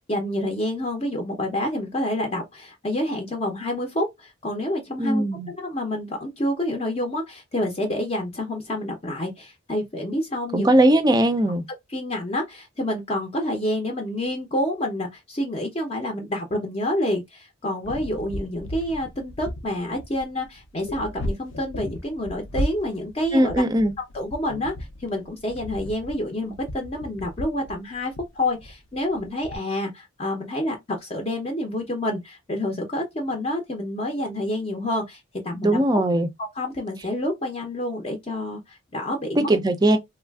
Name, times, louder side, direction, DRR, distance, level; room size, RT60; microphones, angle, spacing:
voice 1, 0.1-10.9 11.9-23.6 24.1-24.7 25.0-36.0 36.4-39.5, left 1 dB, 30° left, 0.6 m, -28 dB
voice 2, 5.0-5.5 10.5-11.6 23.3-23.9 35.6-36.3 39.5-40.0, right 1 dB, 20° right, 0.4 m, -19 dB
sound 1, 17.8-29.6, left 1 dB, 70° left, 0.6 m, -35 dB
3.2 x 2.4 x 2.3 m
head